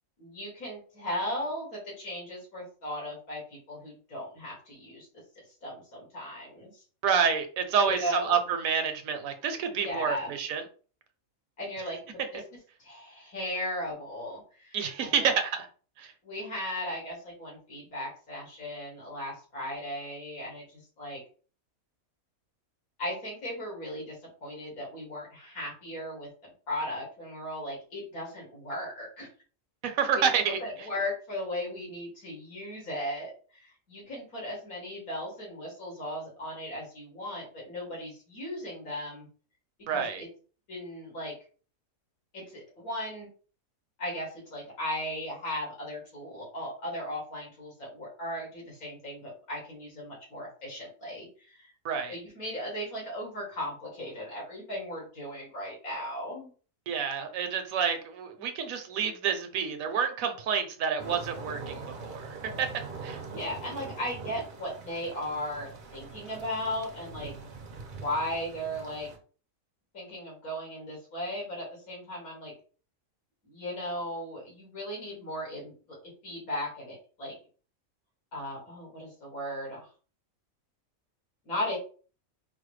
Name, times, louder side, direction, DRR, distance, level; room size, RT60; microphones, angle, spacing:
voice 1, 0.2-5.1 5.4-6.8 7.8-8.4 9.8-10.3 11.6-12.4 12.8-15.1 16.2-21.2 23.0-24.2 24.4-26.3 26.7-29.3 30.1-30.2 30.6-39.3 39.9-40.3 40.7-41.3 42.3-43.3 44.0-51.7 52.1-56.5 63.3-67.3 68.0-69.1 69.9-72.5 73.4-76.0 76.2-77.4 78.3-79.9 81.5-81.8, left 1 dB, 85° left, -3 dB, 2.4 m, -37 dB
voice 2, 7.0-10.6 14.7-15.7 16.0-16.1 29.8-30.6 39.9-40.2 51.8-52.2 56.9-62.7 63.0-63.2, right 7 dB, 75° right, 7 dB, 1.1 m, -28 dB
sound 1, 61.0-69.2, right 4 dB, 50° right, 0.6 m, -43 dB
4.7 x 2.1 x 3.2 m, 0.39 s
omnidirectional pair, 1.5 m